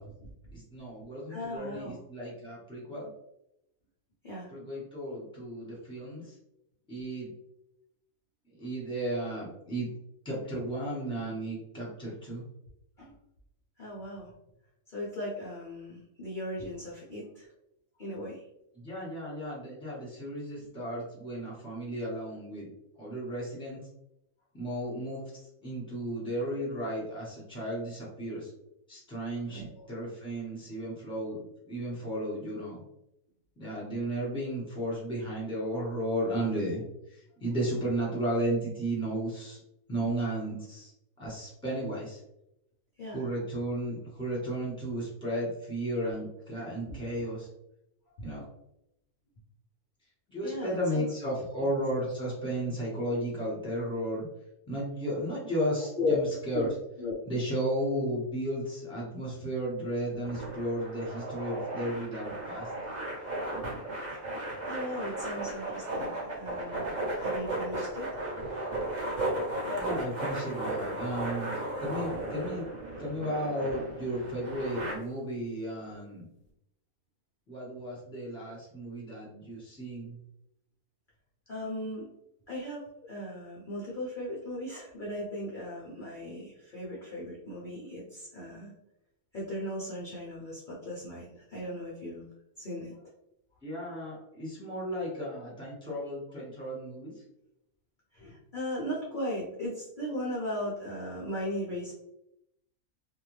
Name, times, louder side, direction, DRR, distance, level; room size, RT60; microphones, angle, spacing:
voice 1, 0.5-3.1 4.5-6.4 6.9-7.3 8.6-9.9 10.2-12.4 18.7-22.7 23.0-23.8 24.5-25.2 25.6-28.5 28.9-32.8 33.6-36.8 37.1-39.6 39.9-40.9 41.2-42.2 43.1-47.5 48.2-48.4 50.3-54.3 54.7-56.7 57.3-62.7 69.7-71.5 71.8-72.7 73.0-76.3 77.5-80.2 93.6-97.1, right 1 dB, 5° left, -6 dB, 0.9 m, -34 dB
voice 2, 1.3-2.0 4.2-4.5 13.0-13.1 13.8-14.3 14.9-17.5 18.0-18.4 29.5-29.9 40.0-40.1 43.0-43.2 46.9-47.0 50.4-51.1 51.6-51.7 56.0-56.2 56.5-56.7 57.0-57.2 64.6-66.9 67.2-68.1 81.5-82.1 82.5-88.7 89.3-92.2 92.6-92.9 98.1-101.9, left 1 dB, 60° left, -6 dB, 0.5 m, -37 dB
sound 1, 60.2-74.9, right 1 dB, 45° right, 0.6 m, -35 dB
2.6 x 2.2 x 3.1 m, 0.83 s
omnidirectional pair, 1.6 m